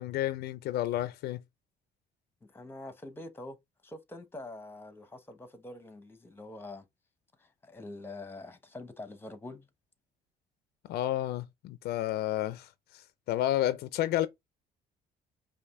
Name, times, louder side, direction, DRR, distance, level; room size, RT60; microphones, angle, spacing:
voice 1, 0.0-1.4 10.9-13.0 13.3-14.3, left 13 dB, 70° left, 0.4 m, -31 dB
voice 2, 2.5-3.6 3.8-6.9 7.4-9.7, left 2 dB, 15° left, 0.9 m, -45 dB
5.1 x 2.5 x 3.6 m
cardioid pair, 110°, 17 cm